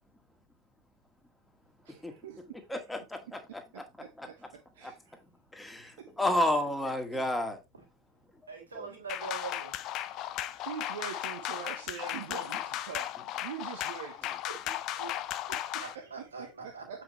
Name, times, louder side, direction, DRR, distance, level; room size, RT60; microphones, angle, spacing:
voice 1, 1.8-2.7 3.3-3.4 4.0-5.2 5.8-6.1 7.1-7.2 10.6-14.3 14.9-15.0 15.5-17.0, right 8 dB, 60° right, 1.1 m, -44 dB
voice 2, 2.7-3.6 5.5-5.9 6.2-7.6, left 1 dB, 5° left, 1.9 m, -30 dB
voice 3, 8.5-9.8 14.6-15.5 15.8-16.9, right 5 dB, 80° right, 3.5 m, -43 dB
sound 1, 9.1-16.0, left 13 dB, 40° left, 0.7 m, -36 dB
7.8 x 5.9 x 3.1 m
figure-of-eight pair, 80°, 0 cm